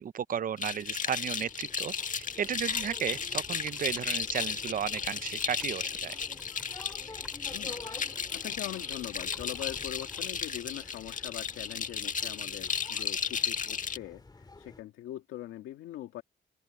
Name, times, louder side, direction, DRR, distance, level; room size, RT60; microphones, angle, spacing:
voice 1, 0.0-6.2, right 8 dB, 45° right, 0.7 m, -34 dB
sound 1, 0.6-14.0, left 6 dB, 40° left, 1.6 m, -34 dB
sound 2, 0.6-14.8, left 3 dB, 20° left, 2.6 m, -50 dB
Computer keyboard, 3.7-4.0 4.3-5.9 6.2-7.0 7.2-7.6 8.0-10.3, equal, ahead, 7.5 m, -56 dB
voice 2, 8.3-16.2, left 14 dB, 90° left, 2.1 m, -42 dB
open air
cardioid pair, 90°, 20 cm